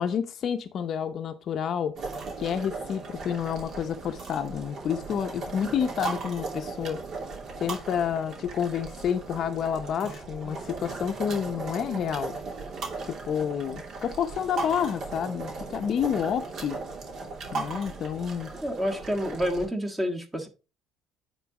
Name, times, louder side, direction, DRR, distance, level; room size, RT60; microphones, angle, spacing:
voice 1, 0.0-2.0 2.4-7.0 7.6-12.3 13.2-16.8 17.5-18.5, left 8 dB, 50° left, 0.7 m, -29 dB
sound 1, 1.9-19.7, right 3 dB, 55° right, 2.8 m, -37 dB
voice 2, 18.6-20.5, equal, 10° right, 1.6 m, -28 dB
9.3 x 3.9 x 4.8 m
cardioid pair, 115°, 0 cm